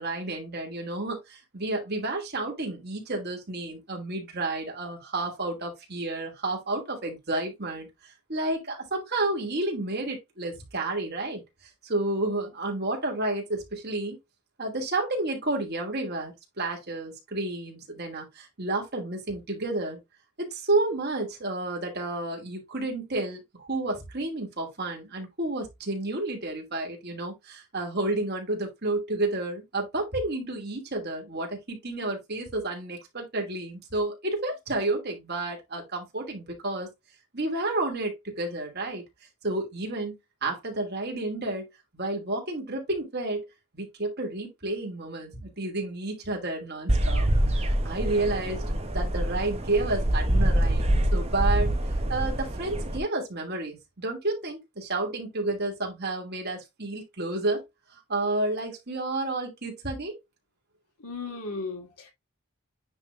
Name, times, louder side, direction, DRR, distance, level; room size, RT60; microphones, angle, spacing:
voice 1, 0.0-11.4 11.8-14.2 14.6-20.0 20.4-36.9 37.3-39.0 39.4-41.7 41.9-43.5 43.7-48.6 48.9-51.7 52.1-57.6 58.1-60.2, right 2 dB, 45° right, 2.9 m, -31 dB
sound 1, 46.9-53.0, right 1 dB, 30° right, 1.0 m, -25 dB
voice 2, 61.0-62.1, left 3 dB, 85° left, 2.6 m, -35 dB
9.7 x 3.4 x 3.3 m
head